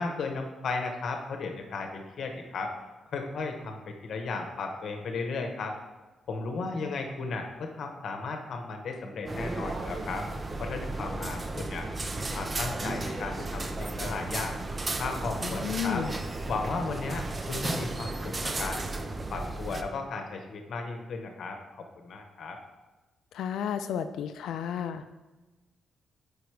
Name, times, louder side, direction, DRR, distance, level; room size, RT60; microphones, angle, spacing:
voice 1, 0.0-2.7 3.1-5.8 6.3-10.3 10.6-11.8 12.1-14.6 15.0-16.0 16.5-18.9 19.3-21.6 22.0-22.6, left 3 dB, 65° left, 4 dB, 0.9 m, -35 dB
sound 1, 9.3-19.8, right 2 dB, 25° right, 0.4 m, -34 dB
voice 2, 15.4-16.2 23.3-25.0, left 8 dB, 85° left, 9 dB, 0.3 m, -32 dB
5.1 x 4.8 x 4.6 m, 1.2 s
cardioid pair, 120°, 0 cm